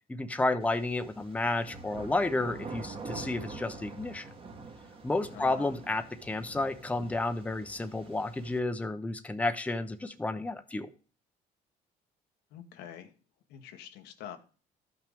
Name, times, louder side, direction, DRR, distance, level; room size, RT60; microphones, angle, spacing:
voice 1, 0.1-4.3 5.0-10.9, left 2 dB, 10° left, 8 dB, 0.7 m, -31 dB
sound 1, 0.6-8.6, right 3 dB, 35° right, 1.5 m, -46 dB
voice 2, 5.3-5.7 12.5-13.1 13.5-14.4, left 10 dB, 85° left, 6 dB, 1.1 m, -45 dB
13.0 x 5.8 x 3.5 m, 0.38 s
cardioid pair, 110°, 17 cm